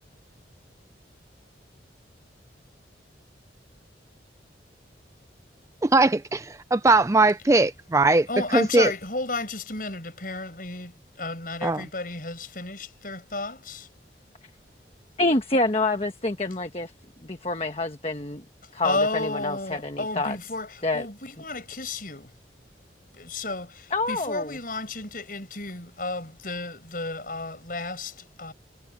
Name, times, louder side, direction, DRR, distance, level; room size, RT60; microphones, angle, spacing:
voice 1, 5.8-8.3 8.5-8.9 11.6-11.8, right 2 dB, 15° right, 0.4 m, -20 dB
voice 2, 8.3-13.9 18.6-22.3 23.1-28.5, left 2 dB, 50° left, 7.7 m, -32 dB
voice 3, 15.2-16.9 17.2-18.4 18.7-20.4 20.8-21.1 23.9-24.6, left 2 dB, 35° left, 1.3 m, -27 dB
head